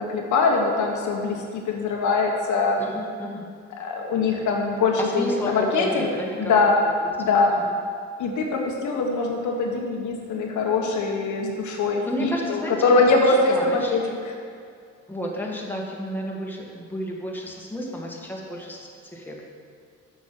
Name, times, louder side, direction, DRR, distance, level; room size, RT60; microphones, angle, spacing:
voice 1, 0.0-2.8 3.8-6.1 6.4-6.7 7.2-7.5 8.2-14.0, left 3 dB, 80° left, 0 dB, 1.3 m, -22 dB
voice 2, 2.8-3.5 5.0-6.8 7.5-7.8 12.0-14.2 15.1-19.4, equal, 5° left, -2 dB, 1.5 m, -32 dB
7.3 x 6.3 x 6.0 m, 2.3 s
cardioid pair, 90°, 30 cm